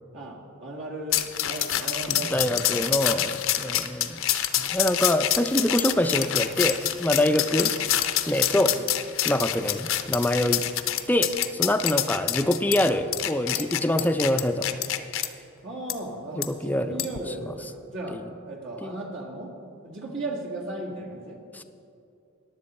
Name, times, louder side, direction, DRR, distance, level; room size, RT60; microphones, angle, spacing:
voice 1, 0.1-3.8 8.6-8.8 10.4-10.6 15.6-18.2 18.5-19.5 19.8-21.4, right 2 dB, 60° right, -1 dB, 1.9 m, -37 dB
sound 1, 1.1-15.3 15.9-16.0 16.4-16.5 17.0-17.2, left 12 dB, 65° left, 0.6 m, -27 dB
voice 2, 2.1-4.2 4.6-7.7 8.3-8.8 9.3-10.6 11.1-14.7 16.3-17.1 18.1-18.2 18.8-19.0 21.5-21.6, left 1 dB, 10° left, 8 dB, 0.4 m, -25 dB
15.0 x 10.5 x 4.2 m, 2.6 s
head